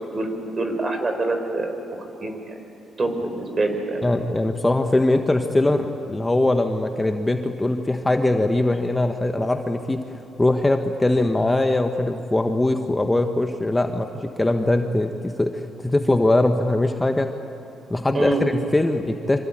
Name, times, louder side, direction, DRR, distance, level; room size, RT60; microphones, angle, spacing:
voice 1, 0.6-2.5 3.0-4.0 18.1-18.4, right 2 dB, 35° right, 6 dB, 4.9 m, -25 dB
voice 2, 4.0-10.0 10.4-17.3 17.9-19.4, left 2 dB, 15° left, 5 dB, 1.3 m, -21 dB
26.0 x 25.5 x 8.9 m, 2.8 s
cardioid pair, 90°, 0 cm